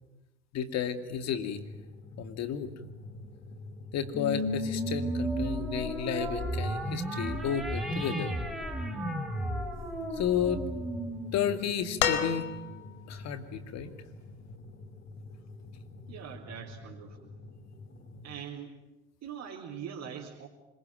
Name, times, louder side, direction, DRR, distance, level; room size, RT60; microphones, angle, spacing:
voice 1, 0.5-1.6 2.2-2.7 3.9-8.3 10.1-10.6 11.3-12.5 13.1-13.9, left 8 dB, 50° left, 9 dB, 2.6 m, -32 dB
sound 1, 1.5-18.4, left 2 dB, 35° left, 5.3 m, -47 dB
sound 2, 4.1-12.9, equal, ahead, 4.8 m, -34 dB
sound 3, 12.0-13.0 14.5-14.6, left 9 dB, 80° left, 2.0 m, -30 dB
voice 2, 16.1-17.3 18.2-18.7 19.2-20.5, right 8 dB, 55° right, -3 dB, 4.4 m, -42 dB
25.5 x 22.5 x 9.2 m, 1.0 s
hypercardioid pair, 70°, 33 cm